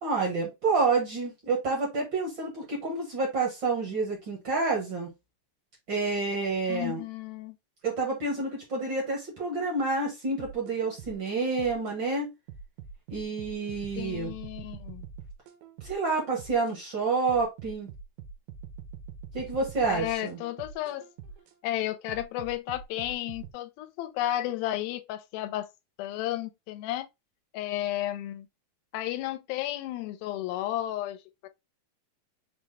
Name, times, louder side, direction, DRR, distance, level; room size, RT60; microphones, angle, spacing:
voice 1, 0.0-5.1 5.9-7.0 7.8-12.3 13.1-14.3 15.8-17.9 19.3-20.4, right 3 dB, 65° right, 1.1 m, -29 dB
voice 2, 6.7-7.6 14.0-15.1 19.9-21.1 21.6-25.7 26.0-27.1 27.5-28.5 28.9-31.5, left 14 dB, 90° left, 2.4 m, -33 dB
sound 1, 10.4-11.9 12.5-16.7 17.3-21.5 22.1-23.5, right 5 dB, 80° right, 2.5 m, -44 dB
6.1 x 2.1 x 3.3 m
omnidirectional pair, 4.1 m